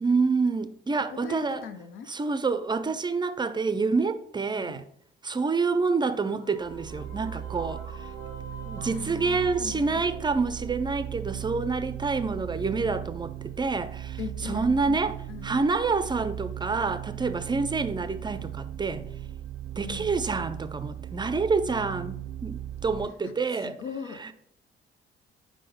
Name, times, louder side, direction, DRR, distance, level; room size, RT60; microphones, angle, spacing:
voice 1, 0.0-1.6 2.1-4.8 5.2-8.1 8.7-15.2 15.4-19.0 19.8-23.8 24.2-24.3, right 4 dB, 20° right, 0.4 m, -27 dB
voice 2, 1.1-2.1 4.6-4.8 8.8-9.9 14.2-15.0 15.3-15.5 19.8-20.1 23.2-24.3, left 7 dB, 80° left, 0.6 m, -40 dB
sound 1, 6.0-11.5, left 4 dB, 45° left, 1.3 m, -49 dB
sound 2, 6.6-23.1, right 12 dB, 85° right, 0.4 m, -38 dB
4.9 x 3.8 x 5.3 m
cardioid pair, 90°, 20 cm